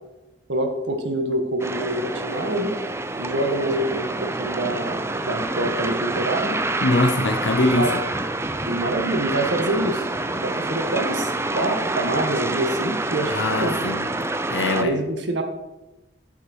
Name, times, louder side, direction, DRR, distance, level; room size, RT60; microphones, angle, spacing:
voice 1, 0.5-2.8 3.2-6.6 7.8-8.0 8.6-10.1 10.4-13.8 14.8-15.4, right 1 dB, 75° right, 5 dB, 1.4 m, -26 dB
sound 1, 1.6-14.8, right 2 dB, 15° right, 0.5 m, -27 dB
voice 2, 6.8-7.9 13.3-14.1 14.5-15.0, left 2 dB, 85° left, 4 dB, 0.8 m, -22 dB
8.0 x 6.5 x 6.4 m, 1.0 s
head